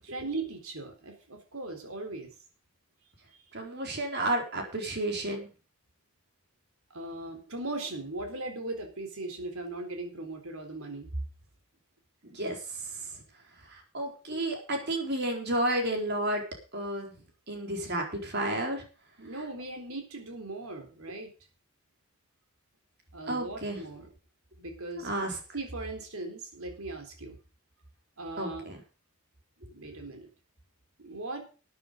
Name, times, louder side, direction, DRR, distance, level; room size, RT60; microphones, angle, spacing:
voice 1, 0.0-2.3 3.3-3.4 6.9-11.2 19.2-21.3 23.1-24.1 24.6-25.1 25.5-27.4 28.2-28.7 29.6-30.3 31.0-31.5, right 2 dB, 75° right, 4 dB, 3.9 m, -38 dB
voice 2, 3.5-5.5 12.3-12.6 13.7-16.4 16.7-17.1 17.5-18.8 23.3-23.8 25.0-25.3 28.4-28.8, right 1 dB, 50° right, 2 dB, 4.2 m, -31 dB
13.5 x 9.6 x 5.2 m, 0.35 s
head